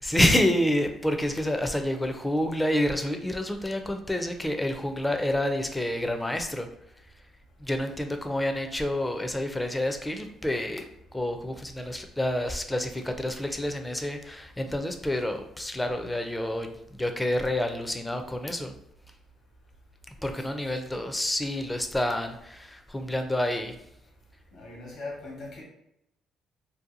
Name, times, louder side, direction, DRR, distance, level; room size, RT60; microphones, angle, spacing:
voice 1, 0.0-6.7 7.6-10.9 11.1-18.7 20.2-23.8, left 1 dB, 10° left, 5 dB, 0.4 m, -28 dB
voice 2, 24.5-25.6, left 2 dB, 65° left, -2 dB, 1.1 m, -40 dB
2.6 x 2.2 x 2.5 m, 0.79 s
cardioid pair, 80°, 0 cm